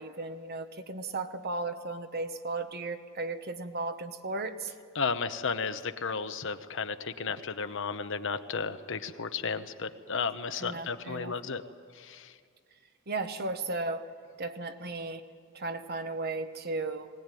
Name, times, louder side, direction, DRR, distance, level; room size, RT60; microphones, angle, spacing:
voice 1, 0.0-4.7 10.6-11.3 13.1-14.0 14.4-15.2 15.5-17.1, right 3 dB, 50° right, 8 dB, 1.2 m, -35 dB
voice 2, 4.9-11.6 11.9-12.3, left 5 dB, 60° left, 10 dB, 1.0 m, -33 dB
20.5 x 19.0 x 9.1 m, 2.1 s
head